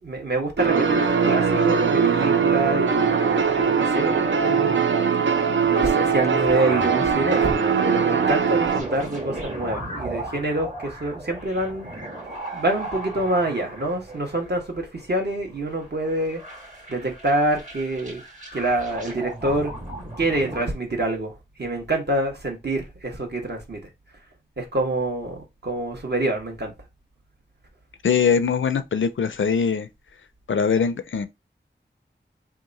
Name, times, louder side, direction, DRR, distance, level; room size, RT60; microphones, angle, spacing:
voice 1, 0.0-4.8 5.6-11.9 12.5-16.4 16.9-18.2 18.5-19.7 20.2-21.3 21.6-23.8 24.6-26.7, right 2 dB, 60° right, 1.2 m, -26 dB
sound 1, 0.6-8.8, right 6 dB, 75° right, 0.5 m, -21 dB
sound 2, 6.6-20.7, right 1 dB, 40° right, 1.4 m, -37 dB
voice 2, 28.0-29.9 30.5-31.3, left 6 dB, 80° left, 0.4 m, -22 dB
2.9 x 2.3 x 3.8 m
wide cardioid pair, 40°, 20 cm